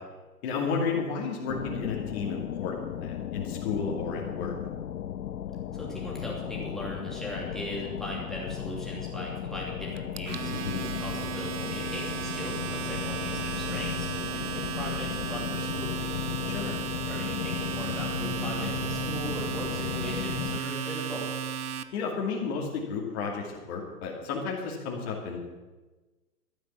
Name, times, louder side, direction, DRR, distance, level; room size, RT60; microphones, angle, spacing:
voice 1, 0.4-4.5 10.5-10.9 16.5-16.8 21.9-25.4, left 5 dB, 40° left, -2 dB, 2.6 m, -32 dB
sound 1, 1.5-20.6, left 9 dB, 70° left, 0.8 m, -35 dB
voice 2, 5.7-10.5 11.0-16.1 17.1-21.3, equal, ahead, -4 dB, 2.9 m, -39 dB
Domestic sounds home sounds, 10.0-21.8, right 8 dB, 70° right, 0.9 m, -35 dB
12.5 x 9.2 x 7.1 m, 1.2 s
hypercardioid pair, 130°, 47 cm